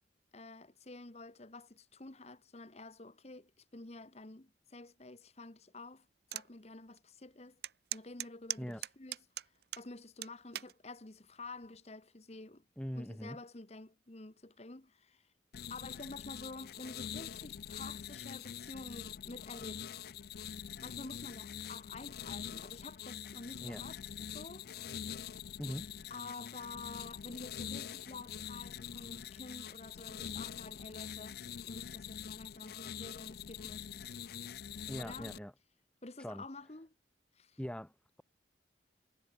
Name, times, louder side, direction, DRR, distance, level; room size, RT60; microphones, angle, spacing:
voice 1, 0.3-6.1 6.3-7.6 7.9-9.2 9.7-12.6 12.9-15.2 15.7-19.9 20.8-24.0 24.3-24.9 26.1-33.9 34.4-34.5 35.0-35.3 36.0-36.9 37.3-37.6, left 2 dB, 35° left, 1.2 m, -49 dB
sound 1, 6.3-6.5 7.0-7.1 7.6-9.9 10.2-10.7 11.4-11.8, right 13 dB, 55° right, 0.8 m, -40 dB
voice 2, 12.8-13.4 23.6-23.8 25.6-25.9 34.9-35.5 36.2-36.4 37.6-37.9, equal, 5° left, 1.1 m, -41 dB
sound 2, 15.5-35.4, left 8 dB, 55° left, 0.4 m, -45 dB
head